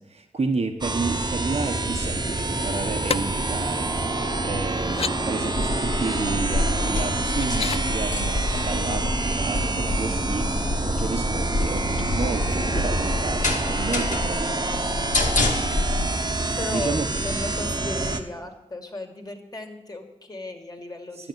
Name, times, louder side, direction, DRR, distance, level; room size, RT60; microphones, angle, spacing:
voice 1, 0.0-3.9 4.4-14.8 16.7-17.4 21.2-21.3, right 4 dB, 55° right, 4 dB, 1.1 m, -31 dB
sound 1, 0.8-18.2, right 2 dB, 35° right, 1.2 m, -27 dB
sound 2, 3.1-3.2 4.0-4.1 4.8-5.2 6.9-7.8 9.6-9.7 10.0-10.5 11.5-12.5 12.9-13.0, left 6 dB, 50° left, 0.4 m, -32 dB
sound 3, 5.6-16.1, left 2 dB, 85° left, 2.5 m, -28 dB
voice 2, 16.6-21.3, left 2 dB, 30° left, 3 dB, 2.3 m, -35 dB
12.0 x 7.0 x 9.2 m, 1.0 s
cardioid pair, 60°, 13 cm